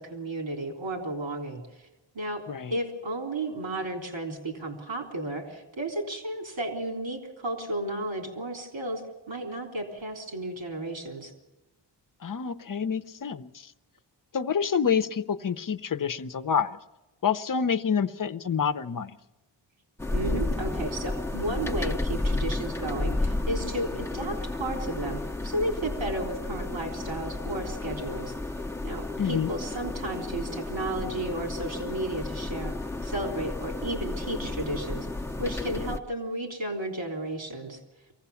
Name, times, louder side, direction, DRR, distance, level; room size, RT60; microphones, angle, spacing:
voice 1, 0.0-1.6 2.2-2.4 2.7-9.0 9.3-11.3 20.1-28.3 28.8-32.7 33.0-35.1 35.4-37.8, right 1 dB, 90° right, 2 dB, 3.6 m, -33 dB
voice 2, 2.5-2.8 12.2-13.7 14.3-16.8 17.2-19.1 29.2-29.5, left 7 dB, 45° left, 11 dB, 0.8 m, -27 dB
sound 1, 20.0-36.0, left 2 dB, 5° left, 0.7 m, -32 dB
23.5 x 16.0 x 7.1 m, 1.1 s
wide cardioid pair, 125°, 45 cm